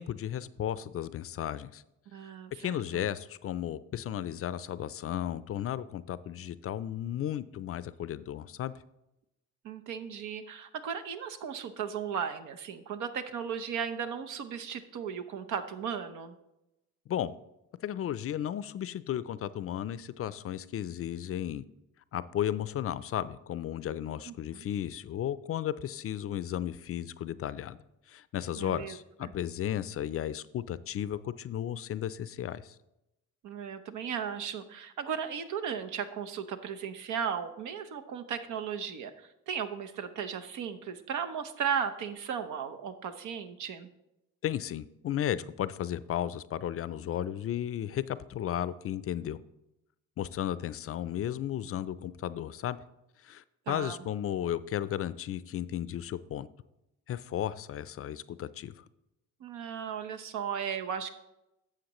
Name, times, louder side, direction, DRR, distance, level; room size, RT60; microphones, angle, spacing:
voice 1, 0.0-1.8 2.6-8.7 17.1-17.3 17.8-21.6 22.1-27.8 28.1-32.8 44.4-49.4 50.2-52.8 53.2-56.5 57.1-58.7, left 11 dB, 50° left, 16 dB, 0.4 m, -34 dB
voice 2, 2.1-3.0 9.6-16.3 24.3-24.7 28.6-29.0 29.2-29.3 33.4-43.9 53.7-54.0 59.4-61.1, right 7 dB, 80° right, 8 dB, 0.8 m, -36 dB
11.5 x 7.4 x 3.0 m, 0.90 s
cardioid pair, 90°, 30 cm